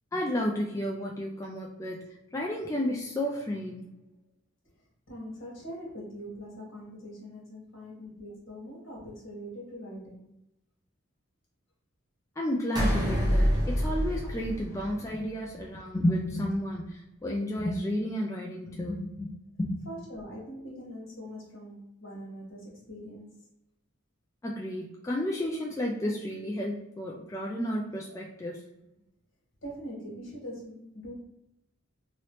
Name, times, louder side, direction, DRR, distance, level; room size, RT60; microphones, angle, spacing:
voice 1, 0.1-2.0 2.3-3.9 12.4-19.3 19.6-19.9 24.4-28.6, equal, 15° left, -2 dB, 0.3 m, -32 dB
voice 2, 5.1-10.3 19.8-23.3 29.6-31.1, equal, 60° left, -3 dB, 1.5 m, -42 dB
sound 1, 12.7-15.3, equal, 20° right, 0.7 m, -27 dB
3.0 x 2.9 x 3.1 m, 0.86 s
head